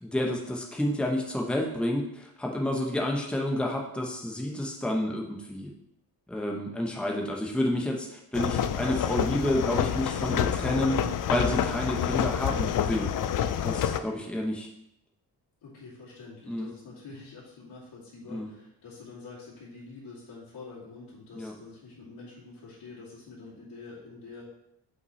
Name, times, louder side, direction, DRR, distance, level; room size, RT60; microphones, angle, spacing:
voice 1, 0.0-5.7 6.3-11.0 11.3-13.1 13.6-14.7 16.5-16.7 18.3-18.5 21.4-21.5, left 1 dB, 5° left, 0 dB, 0.9 m, -30 dB
sound 1, 8.3-14.0, left 9 dB, 50° left, 0.4 m, -28 dB
voice 2, 15.6-24.4, left 3 dB, 70° left, -9 dB, 2.6 m, -46 dB
8.1 x 5.7 x 3.2 m, 0.81 s
wide cardioid pair, 155°, 41 cm